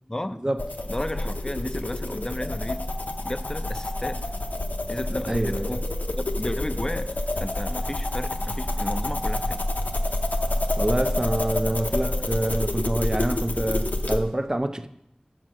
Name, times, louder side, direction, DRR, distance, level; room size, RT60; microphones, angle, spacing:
voice 1, 0.1-0.4 0.9-2.9 3.2-4.2 4.9-5.9 6.2-9.6, left 1 dB, 25° left, 0.5 m, -33 dB
sound 1, 0.6-14.2, left 1 dB, 85° left, 0.7 m, -28 dB
voice 2, 5.3-5.8 10.8-14.9, right 1 dB, 25° right, 0.5 m, -26 dB
7.4 x 5.7 x 6.2 m
wide cardioid pair, 50°, 3 cm